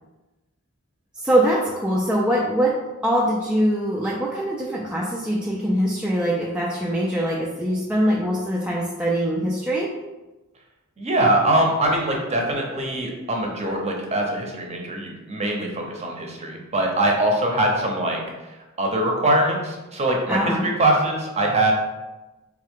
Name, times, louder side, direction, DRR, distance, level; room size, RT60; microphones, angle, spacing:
voice 1, 1.2-2.8 3.0-9.9 20.3-20.7, right 1 dB, 5° right, -5 dB, 0.4 m, -23 dB
voice 2, 11.0-18.2 18.8-21.7, right 1 dB, 30° right, 1 dB, 0.7 m, -22 dB
3.6 x 3.3 x 3.6 m, 1.1 s
head